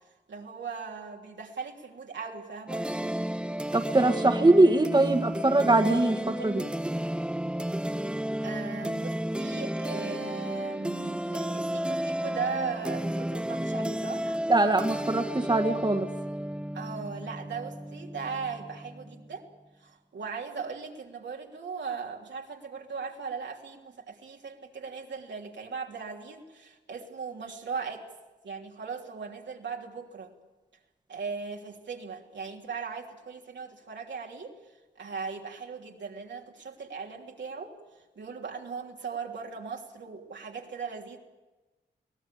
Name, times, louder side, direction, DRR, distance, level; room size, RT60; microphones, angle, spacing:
voice 1, 0.3-2.9 8.4-14.4 16.7-19.4 19.8-28.0 28.4-30.4 31.1-34.5 35.0-37.7 38.1-41.2, right 5 dB, 75° right, 1 dB, 3.2 m, -38 dB
sound 1, 2.7-19.3, right 1 dB, 5° right, 0.7 m, -32 dB
voice 2, 3.7-6.6 14.5-16.1, right 2 dB, 25° right, 6 dB, 1.9 m, -22 dB
23.5 x 17.5 x 8.6 m, 1.1 s
cardioid pair, 55°, 19 cm